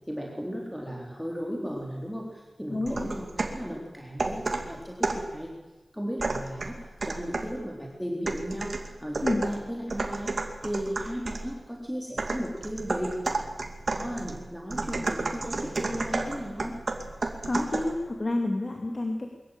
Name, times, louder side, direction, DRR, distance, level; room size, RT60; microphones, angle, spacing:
voice 1, 0.1-5.5 5.9-13.1 13.9-16.7, equal, ahead, -2 dB, 3.6 m, -35 dB
voice 2, 2.7-3.1 9.2-9.4 17.4-19.3, left 2 dB, 45° left, 2 dB, 2.6 m, -29 dB
sound 1, 2.9-3.7 4.2-5.3 6.2-7.6 8.3-11.5 12.2-18.0, right 3 dB, 65° right, 2.5 m, -32 dB
23.0 x 14.5 x 9.1 m, 1.1 s
wide cardioid pair, 75°, 0 cm